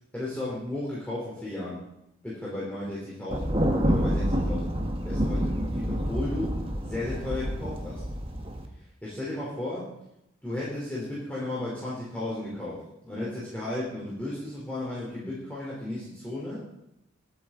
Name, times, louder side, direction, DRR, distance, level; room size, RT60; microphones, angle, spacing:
voice 1, 0.1-1.8 2.2-3.6 3.8-4.8 5.0-8.0 9.0-9.9 10.4-16.6, left 2 dB, 5° left, -8 dB, 3.5 m, -34 dB
Thunder, 3.3-8.7, equal, 25° right, 1.5 m, -28 dB
22.5 x 8.8 x 3.9 m, 0.84 s
head